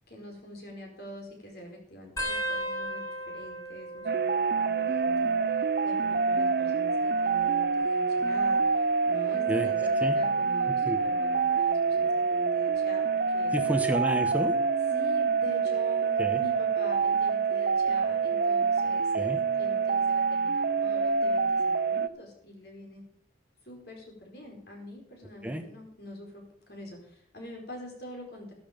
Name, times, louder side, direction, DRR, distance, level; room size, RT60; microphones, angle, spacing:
voice 1, 0.1-5.4 5.8-13.5 14.9-23.0 23.6-28.5, equal, 55° left, 0 dB, 4.7 m, -45 dB
sound 1, 2.2-5.3 5.6-6.2 7.2-8.7 9.3-9.7 10.9-11.2 12.7-12.8, equal, 15° left, 2.5 m, -38 dB
sound 2, 4.1-22.1, right 5 dB, 50° right, 0.5 m, -26 dB
voice 2, 13.5-14.5 16.2-16.4 19.1-19.4 25.4-25.6, right 1 dB, 10° right, 6 dB, 1.2 m, -30 dB
13.0 x 12.5 x 5.2 m, 0.63 s
head